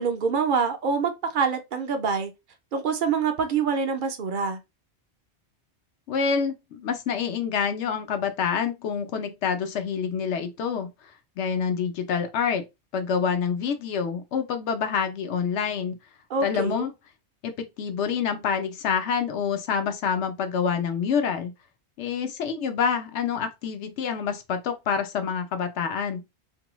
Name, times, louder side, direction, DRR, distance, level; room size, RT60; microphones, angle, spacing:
voice 1, 0.0-2.3 2.7-4.6 16.3-16.9, right 5 dB, 60° right, 0.6 m, -25 dB
voice 2, 6.1-10.9 11.4-12.7 12.9-16.0 16.4-16.9 17.4-21.5 22.0-26.2, left 6 dB, 85° left, 0.9 m, -27 dB
2.6 x 2.2 x 2.9 m
omnidirectional pair, 1.1 m